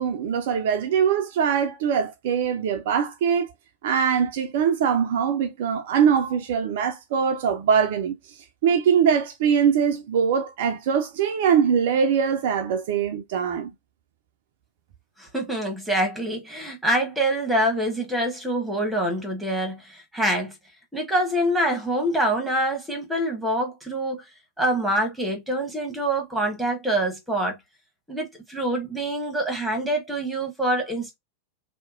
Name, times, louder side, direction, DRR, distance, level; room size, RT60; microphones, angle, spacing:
voice 1, 0.0-3.5 3.8-8.2 8.6-13.7, right 7 dB, 55° right, 0.4 m, -22 dB
voice 2, 15.2-20.5 20.9-24.2 24.6-27.6 28.1-31.2, right 1 dB, 5° right, 1.1 m, -25 dB
2.8 x 2.1 x 2.4 m
figure-of-eight pair, 90°, 0 cm